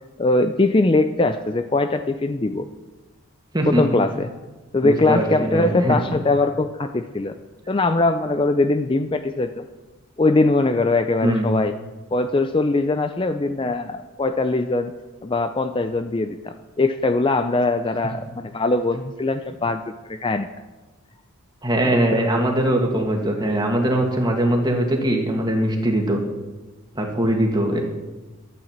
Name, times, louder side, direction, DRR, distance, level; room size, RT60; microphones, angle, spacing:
voice 1, 0.2-2.7 3.7-4.3 4.7-7.3 7.7-9.6 10.2-11.7 12.1-14.9 15.2-19.8 20.1-20.5 21.9-22.5 27.7-27.8, left 2 dB, 25° left, 8 dB, 0.4 m, -21 dB
voice 2, 4.8-6.0 11.2-11.5 21.6-26.2 27.0-27.8, right 1 dB, 20° right, 1 dB, 1.9 m, -21 dB
12.5 x 9.1 x 7.4 m, 1.2 s
head